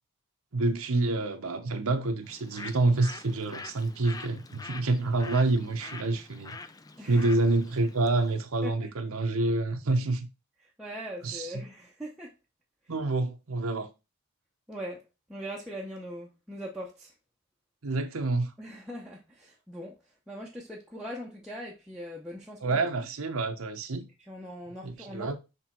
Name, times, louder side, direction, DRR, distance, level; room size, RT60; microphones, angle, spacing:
voice 1, 0.5-6.6 7.1-10.3 11.2-11.5 12.9-13.9 17.8-18.5 22.6-24.1 24.8-25.4, right 2 dB, 75° right, 0.9 m, -27 dB
Bird, 2.2-8.4, left 3 dB, 15° left, 0.3 m, -45 dB
voice 2, 7.0-7.3 8.6-8.9 10.8-12.3 14.7-15.0 15.3-17.1 18.6-20.0 20.3-22.9 24.2-25.4, equal, 5° right, 0.8 m, -41 dB
6.1 x 3.5 x 4.3 m
head